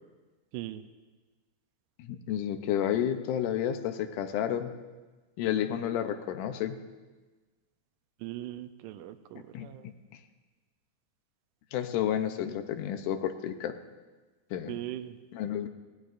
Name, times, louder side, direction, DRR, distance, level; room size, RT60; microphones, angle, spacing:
voice 1, 0.5-0.8 8.2-9.9 14.7-15.2, right 14 dB, 85° right, 9 dB, 2.2 m, -40 dB
voice 2, 2.0-4.7 5.4-6.8 9.5-9.7 11.7-13.8 14.5-14.8 15.3-15.7, left 10 dB, 80° left, 8 dB, 2.3 m, -31 dB
25.5 x 16.0 x 2.5 m, 1.3 s
omnidirectional pair, 3.6 m